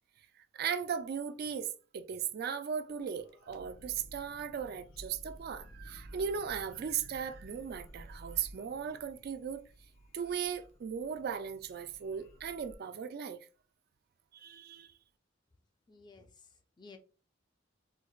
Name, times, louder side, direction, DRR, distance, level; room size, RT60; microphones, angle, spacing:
voice 1, 0.5-1.7 1.9-9.6 10.1-13.4 14.3-14.9, right 7 dB, 50° right, 0.3 m, -37 dB
sound 1, 2.9-12.8, equal, 85° left, 0.6 m, -54 dB
voice 2, 15.9-17.0, left 4 dB, 25° left, 0.4 m, -55 dB
4.5 x 2.0 x 2.3 m
head